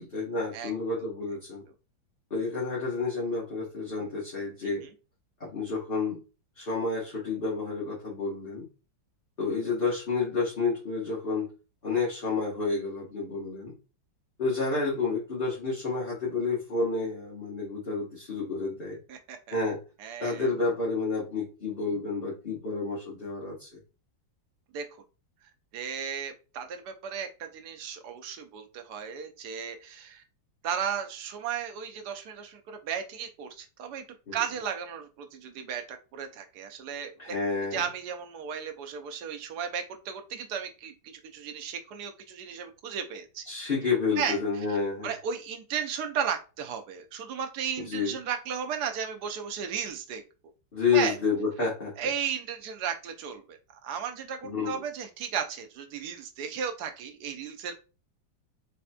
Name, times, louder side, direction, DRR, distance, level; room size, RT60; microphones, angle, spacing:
voice 1, 0.0-1.6 2.3-4.8 5.4-6.2 6.5-8.7 9.4-11.5 11.8-13.7 14.4-19.0 19.5-19.8 20.2-23.7 34.3-34.4 37.2-37.8 43.5-45.1 47.8-48.1 50.7-51.9 54.4-54.7, left 4 dB, 35° left, -6 dB, 1.1 m, -30 dB
voice 2, 20.0-20.5 24.7-24.9 25.7-30.2 30.6-34.0 34.3-37.4 37.7-43.4 44.2-44.4 45.0-50.2 50.9-51.2 52.0-53.6 53.8-57.7, right 7 dB, 70° right, 6 dB, 1.1 m, -35 dB
4.1 x 2.8 x 2.2 m, 0.33 s
omnidirectional pair, 2.0 m